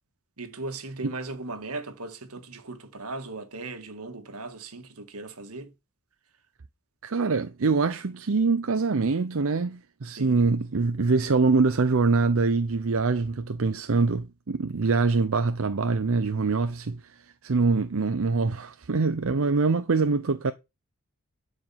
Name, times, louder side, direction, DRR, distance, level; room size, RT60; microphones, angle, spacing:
voice 1, 0.4-5.7 10.0-10.4, right 3 dB, 80° right, 1.7 m, -38 dB
voice 2, 7.0-17.0 17.4-20.5, right 4 dB, 65° right, 0.7 m, -24 dB
12.0 x 4.9 x 5.6 m
head